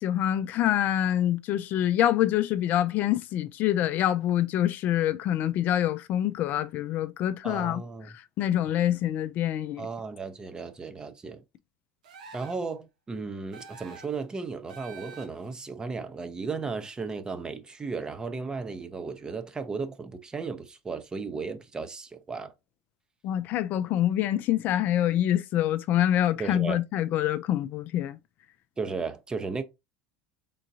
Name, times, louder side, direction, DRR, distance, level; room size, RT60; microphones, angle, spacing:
voice 1, 0.0-7.8 8.1-9.9 23.2-28.2, left 12 dB, 50° left, 0.4 m, -26 dB
voice 2, 7.4-8.2 9.8-11.4 12.3-22.5 26.4-26.8 28.8-29.6, right 4 dB, 20° right, 0.7 m, -35 dB
sound 1, 12.0-12.7 13.5-14.2 14.7-15.5, right 4 dB, 80° right, 1.0 m, -47 dB
3.8 x 3.8 x 2.6 m
hypercardioid pair, 85°, 4 cm